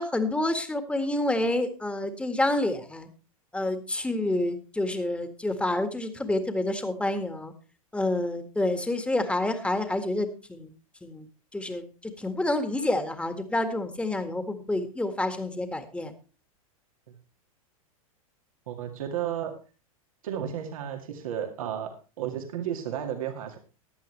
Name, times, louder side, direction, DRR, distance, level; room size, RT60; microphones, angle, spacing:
voice 1, 0.0-3.1 3.5-7.5 7.9-10.7 11.0-11.3 11.5-16.1, left 1 dB, 5° left, 8 dB, 1.8 m, -28 dB
voice 2, 18.7-19.5 20.2-23.6, right 9 dB, 70° right, 3 dB, 2.1 m, -33 dB
15.5 x 10.5 x 3.3 m, 0.35 s
hypercardioid pair, 105°, 18 cm